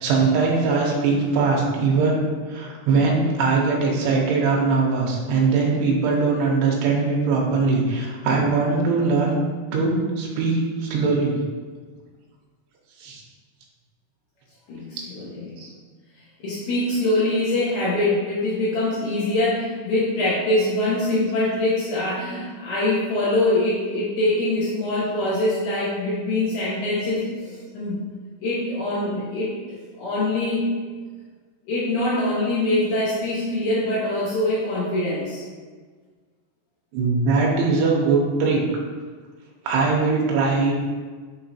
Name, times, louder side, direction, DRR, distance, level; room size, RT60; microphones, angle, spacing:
voice 1, 0.0-2.2 2.5-9.4 9.7-11.4 13.0-13.2 15.6-15.7 36.9-38.6 39.6-40.7, right 4 dB, 80° right, -1 dB, 2.8 m, -21 dB
voice 2, 14.7-15.6 16.4-28.0 28.4-29.5 30.0-30.7 31.7-35.4, left 1 dB, 90° left, -9 dB, 1.6 m, -23 dB
6.4 x 3.0 x 2.7 m, 1.5 s
omnidirectional pair, 4.9 m